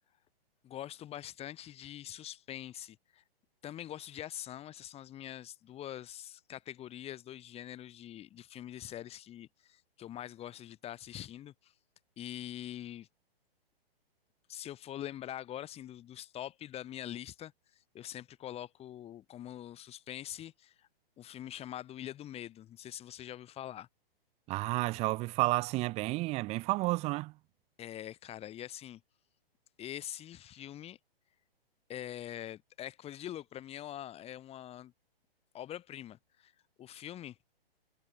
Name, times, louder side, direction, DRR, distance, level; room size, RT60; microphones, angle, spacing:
voice 1, 0.6-3.2 3.6-11.7 12.2-13.1 14.5-17.5 17.9-20.9 21.2-23.9 27.8-29.0 29.8-31.0 31.9-34.9 35.5-36.5 36.8-37.4, left 12 dB, 20° left, 4.5 m, -44 dB
voice 2, 24.5-27.3, right 21 dB, 20° right, 0.8 m, -31 dB
hypercardioid pair, 140°, 30 cm